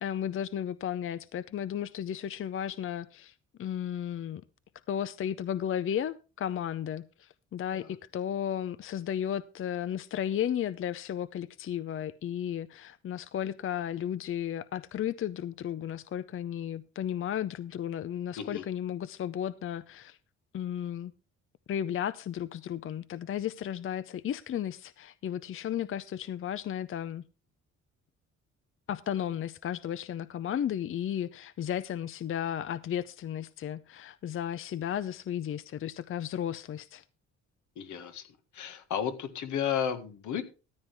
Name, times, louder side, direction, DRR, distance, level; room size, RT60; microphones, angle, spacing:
voice 1, 0.0-4.4 4.9-20.2 20.5-21.1 21.7-27.2 28.9-37.0, left 10 dB, 45° left, 17 dB, 0.5 m, -34 dB
voice 2, 37.8-38.3 38.5-40.4, left 8 dB, 75° left, 9 dB, 1.8 m, -33 dB
14.0 x 9.7 x 3.5 m, 0.32 s
cardioid pair, 90°, 30 cm